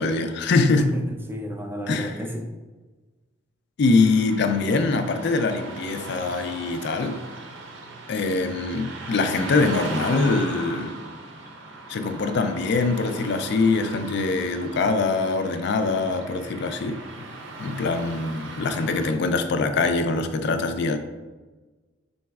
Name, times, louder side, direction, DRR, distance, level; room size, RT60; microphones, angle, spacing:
voice 1, 0.0-0.9 1.9-2.2 3.8-7.2 8.1-11.0 11.9-17.3 17.6-21.0, left 3 dB, 60° left, 0.4 m, -23 dB
voice 2, 0.8-2.6, equal, 10° right, 0.3 m, -31 dB
Car passing by / Traffic noise roadway noise, 3.8-19.1, right 2 dB, 80° right, 0.6 m, -38 dB
4.1 x 3.9 x 2.3 m
head